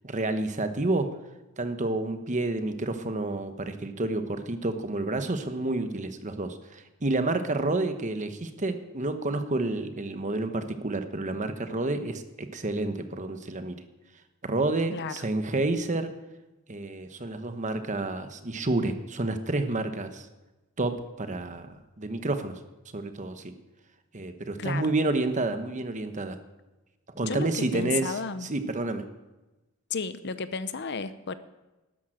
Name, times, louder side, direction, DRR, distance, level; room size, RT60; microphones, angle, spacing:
voice 1, 0.0-1.1 1.6-13.8 14.4-16.1 16.7-20.3 20.8-22.5 22.9-23.5 24.1-26.4 27.1-29.0, right 2 dB, 35° right, 8 dB, 1.1 m, -29 dB
voice 2, 14.9-15.2 24.6-25.0 27.2-28.5 29.9-31.3, left 5 dB, 50° left, 13 dB, 0.7 m, -33 dB
12.5 x 10.5 x 6.5 m, 1.1 s
head